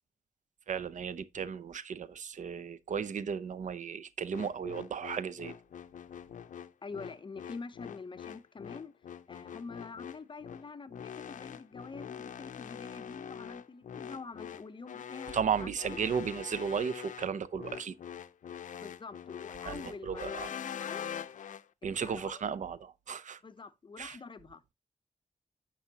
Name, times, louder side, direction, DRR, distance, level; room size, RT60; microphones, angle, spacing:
voice 1, 0.7-5.5 15.3-17.9 19.6-20.5 21.8-23.4 24.0-24.2, right 7 dB, 75° right, 0.5 m, -35 dB
sound 1, 4.3-21.6, left 8 dB, 90° left, 0.5 m, -44 dB
voice 2, 6.8-8.9 9.3-16.0 18.8-21.2 21.9-22.4 23.4-24.6, left 4 dB, 40° left, 0.6 m, -46 dB
9.8 x 6.1 x 2.8 m
wide cardioid pair, 105°, 13 cm